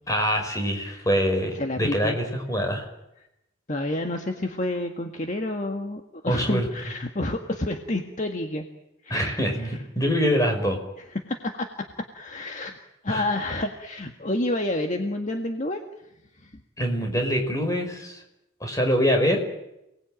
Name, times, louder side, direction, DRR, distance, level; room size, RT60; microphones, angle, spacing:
voice 1, 0.1-2.9 6.3-6.7 9.1-10.8 13.1-13.2 16.8-18.2 18.6-19.4, equal, 15° left, 3 dB, 5.3 m, -24 dB
voice 2, 0.7-1.0 1.5-2.2 3.7-8.7 9.0-9.8 11.1-11.9 12.1-12.8 13.0-15.8 16.4-16.6, left 1 dB, 40° left, 4 dB, 1.8 m, -29 dB
29.0 x 20.0 x 9.0 m, 0.87 s
head